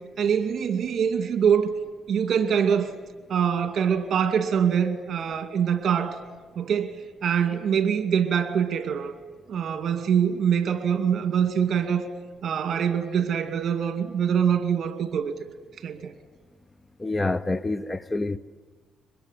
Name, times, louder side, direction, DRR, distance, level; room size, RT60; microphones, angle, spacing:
voice 1, 0.2-1.7 2.1-2.9 3.3-6.2 6.6-9.1 9.5-12.1 12.4-15.3 15.8-16.1, right 7 dB, 55° right, 2.3 m, -24 dB
voice 2, 17.0-18.4, left 2 dB, 20° left, 0.7 m, -27 dB
24.0 x 21.0 x 9.9 m
cardioid pair, 90°, 0 cm